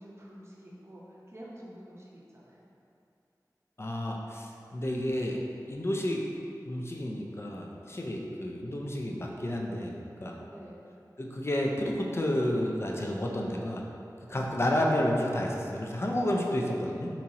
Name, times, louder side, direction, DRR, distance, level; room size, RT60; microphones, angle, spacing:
voice 1, 0.0-2.7 10.5-10.8 14.2-14.5, equal, 40° right, -5 dB, 0.7 m, -48 dB
voice 2, 3.8-5.4 5.7-6.2 6.6-10.3 11.2-13.9 14.3-17.1, left 1 dB, 40° left, 0 dB, 0.4 m, -30 dB
4.0 x 2.9 x 2.7 m, 2.6 s
wide cardioid pair, 55°, 7 cm